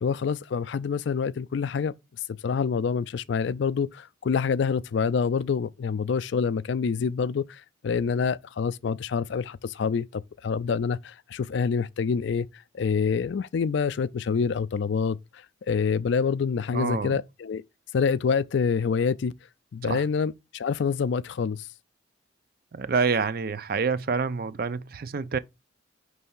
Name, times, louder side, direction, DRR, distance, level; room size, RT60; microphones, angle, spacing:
voice 1, 0.0-1.9 2.3-17.6 17.9-19.3 19.7-21.7, left 6 dB, 60° left, 0.3 m, -27 dB
voice 2, 16.7-17.2 19.9-20.0 22.7-25.4, right 5 dB, 50° right, 0.4 m, -27 dB
5.4 x 3.4 x 5.4 m
head